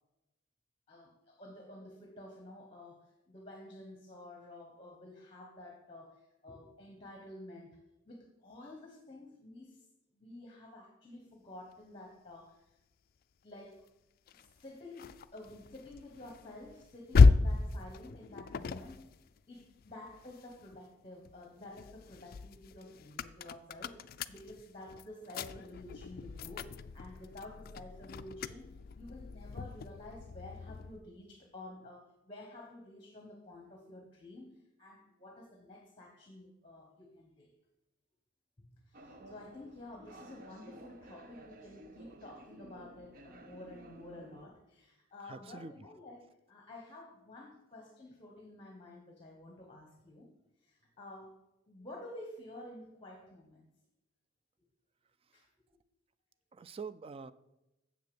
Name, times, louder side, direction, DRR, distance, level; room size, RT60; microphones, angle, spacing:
voice 1, 0.9-7.8 8.0-9.9 10.1-12.7 13.4-13.9 14.3-19.1 19.5-37.5 38.6-50.3 50.6-51.4 51.7-53.7 55.3-55.5, left 1 dB, 25° left, 2 dB, 1.2 m, -51 dB
sound 1, 14.3-20.8 21.2-31.0, left 4 dB, 45° left, 0.3 m, -33 dB
sound 2, 38.9-44.5, right 1 dB, 45° right, 0.8 m, -54 dB
voice 2, 45.3-45.7 56.5-57.3, right 5 dB, 30° right, 14 dB, 0.3 m, -45 dB
7.6 x 6.6 x 7.0 m, 0.96 s
head